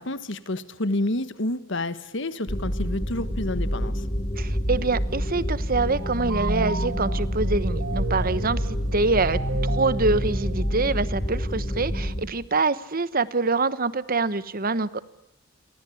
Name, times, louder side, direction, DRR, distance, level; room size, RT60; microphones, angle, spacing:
voice 1, 0.0-4.0, left 1 dB, 65° left, 13 dB, 1.6 m, -29 dB
sound 1, 2.5-12.2, equal, 30° left, 4.3 m, -28 dB
voice 2, 4.4-15.0, right 3 dB, 45° right, 16 dB, 1.1 m, -25 dB
sound 2, 5.9-11.3, right 2 dB, 75° right, 1.3 m, -33 dB
29.5 x 23.5 x 8.6 m, 0.77 s
head